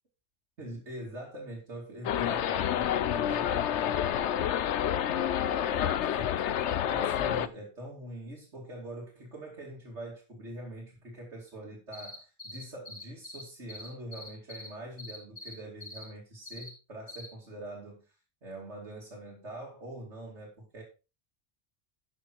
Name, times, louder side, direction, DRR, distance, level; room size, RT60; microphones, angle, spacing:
voice 1, 0.6-4.5 5.3-18.0 18.4-20.8, right 1 dB, 90° right, -4 dB, 3.1 m, -44 dB
sound 1, 2.0-7.5, left 10 dB, 85° left, 1.0 m, -28 dB
sound 2, 11.9-13.4 13.7-14.7 15.0-15.5 15.8-16.0 16.5-16.7 17.1-17.3, left 1 dB, 10° right, 5.7 m, -43 dB
12.5 x 6.9 x 4.6 m, 0.30 s
omnidirectional pair, 1.1 m